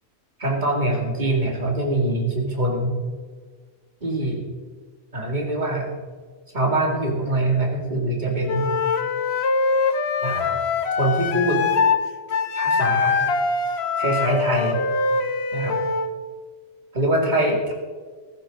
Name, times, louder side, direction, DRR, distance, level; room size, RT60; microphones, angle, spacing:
voice 1, 0.4-2.9 4.0-4.4 5.1-5.9 6.5-8.7 10.2-10.6 11.0-11.6 12.6-13.3 14.0-14.8 15.5-15.7 16.9-17.7, right 1 dB, 30° right, 0 dB, 2.7 m, -23 dB
Wind instrument woodwind instrument, 8.5-12.0 12.3-16.1, left 4 dB, 50° left, 1.0 m, -23 dB
14.5 x 14.0 x 3.9 m, 1.5 s
omnidirectional pair, 1.5 m